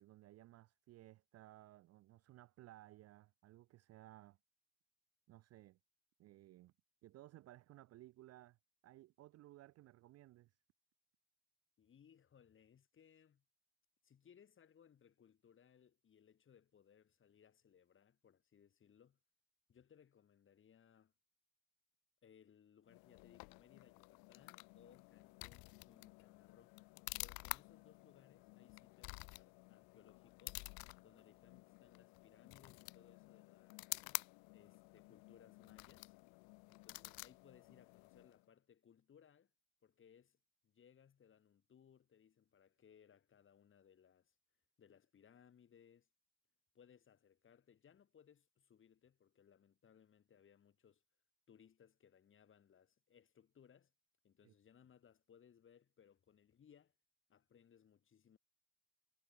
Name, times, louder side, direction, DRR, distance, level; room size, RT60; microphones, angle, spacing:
voice 1, 0.0-4.4 5.3-5.8 6.2-6.7 7.0-8.6 8.8-10.5 54.4-54.5, right 16 dB, 40° right, 0.5 m, -60 dB
voice 2, 11.8-13.4 14.0-19.2 19.7-21.1 22.2-26.7 27.2-30.7 31.0-33.9 34.5-36.1 36.7-39.5 39.8-40.4 40.6-44.4 44.8-46.1 46.7-51.0 51.5-53.9 54.2-56.9 57.3-58.4, left 8 dB, 30° left, 3.6 m, -67 dB
sound 1, 22.9-38.4, left 31 dB, 65° left, 0.5 m, -51 dB
cardioid pair, 125°, 38 cm